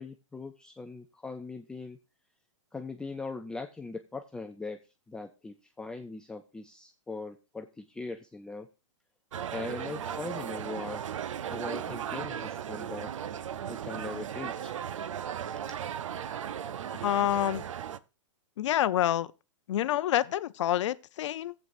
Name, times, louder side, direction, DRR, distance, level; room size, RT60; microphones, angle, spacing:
voice 1, 0.0-2.0 2.7-4.8 5.1-8.7 9.5-11.0 11.5-13.1 13.7-14.8, left 3 dB, 5° left, 0.4 m, -40 dB
sound 1, 9.3-18.0, right 9 dB, 90° right, 0.6 m, -36 dB
voice 2, 17.0-17.6 18.6-19.3 19.7-21.5, left 12 dB, 70° left, 0.6 m, -27 dB
14.5 x 7.9 x 2.5 m
hypercardioid pair, 140°, 16 cm